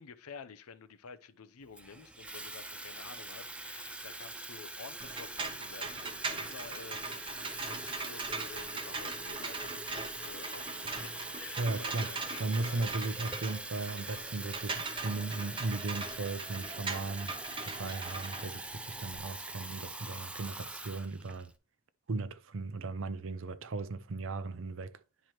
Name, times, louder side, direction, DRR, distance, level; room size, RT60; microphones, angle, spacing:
voice 1, 0.0-13.1, left 5 dB, 80° left, 0.6 m, -50 dB
Water tap faucet / Fill (with liquid), 1.7-21.5, right 2 dB, 5° right, 0.3 m, -43 dB
sound 1, 5.0-19.2, right 3 dB, 20° right, 0.8 m, -41 dB
voice 2, 11.6-17.4 17.6-21.5 22.1-24.9, right 3 dB, 60° right, 0.6 m, -37 dB
10.5 x 4.6 x 3.0 m
head